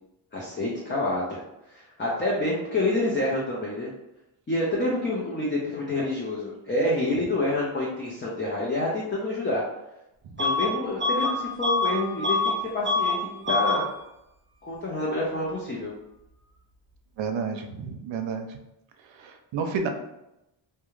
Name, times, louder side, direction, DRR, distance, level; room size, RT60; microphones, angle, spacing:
voice 1, 0.3-1.4 1.7-3.9 4.5-9.6 10.4-13.8 14.6-15.9, left 1 dB, 25° left, -5 dB, 0.6 m, -28 dB
Bus / Alarm, 10.4-10.7 11.0-12.6 12.8-13.2 13.4-13.8, left 3 dB, 25° right, 0.7 m, -25 dB
voice 2, 17.2-18.6 19.1-19.9, right 5 dB, 65° right, 5 dB, 0.6 m, -31 dB
2.4 x 2.2 x 3.1 m, 0.88 s
cardioid pair, 65°, 48 cm